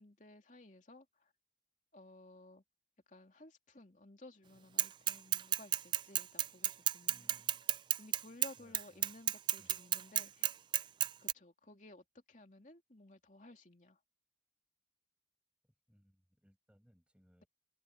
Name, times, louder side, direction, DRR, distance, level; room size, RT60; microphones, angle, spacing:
voice 1, 0.0-1.3 1.9-2.6 3.1-7.3 8.0-10.6 11.2-14.0, left 2 dB, 45° left, 2.9 m, -57 dB
Bicycle / Mechanisms, 4.8-11.3, right 11 dB, 25° right, 0.3 m, -32 dB
voice 2, 7.0-8.0 8.6-9.1 9.6-9.8 15.6-17.5, equal, 5° right, 7.5 m, -67 dB
open air
head